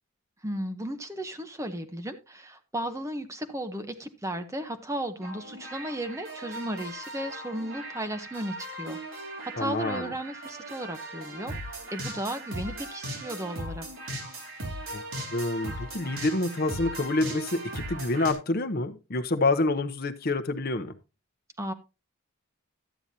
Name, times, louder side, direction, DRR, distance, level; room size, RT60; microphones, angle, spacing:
voice 1, 0.4-11.5 11.9-13.9 21.6-21.7, right 1 dB, 15° right, 8 dB, 0.7 m, -35 dB
sound 1, 5.2-18.3, right 1 dB, 70° right, 3.4 m, -38 dB
voice 2, 9.6-10.1 14.9-15.0 15.3-20.9, left 2 dB, 45° left, 9 dB, 0.7 m, -27 dB
12.5 x 8.8 x 2.7 m, 0.29 s
head